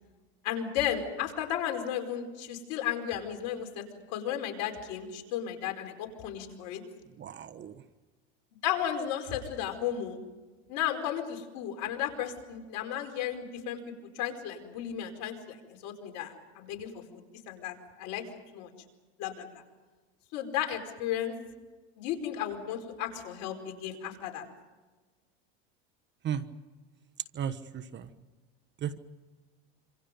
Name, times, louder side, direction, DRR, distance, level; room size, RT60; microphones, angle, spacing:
voice 1, 0.4-3.8 4.1-6.8 8.6-10.2 10.7-13.8 14.1-15.6 15.8-17.0 17.5-18.2 18.5-18.7 19.2-19.4 20.3-21.3 22.0-24.4, left 10 dB, 60° left, 4 dB, 4.9 m, -34 dB
voice 2, 7.2-7.8 26.2-26.5 27.3-28.1 28.8-29.0, right 9 dB, 35° right, 12 dB, 1.3 m, -35 dB
26.5 x 26.5 x 5.4 m, 1.3 s
supercardioid pair, 120°, 32 cm